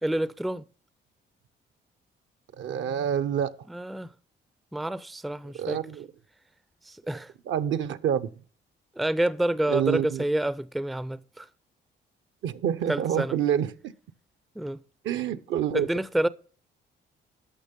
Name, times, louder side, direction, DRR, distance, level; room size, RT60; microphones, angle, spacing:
voice 1, 0.0-0.6 3.7-4.1 4.7-5.8 6.8-7.3 9.0-11.5 12.9-13.4 14.6-14.8 15.7-16.3, right 1 dB, ahead, 0.3 m, -28 dB
voice 2, 2.6-3.6 5.6-6.1 7.5-8.3 9.7-10.2 12.4-13.9 15.0-15.9, right 9 dB, 75° right, 0.7 m, -27 dB
12.5 x 6.0 x 5.2 m
cardioid pair, 90°, 20 cm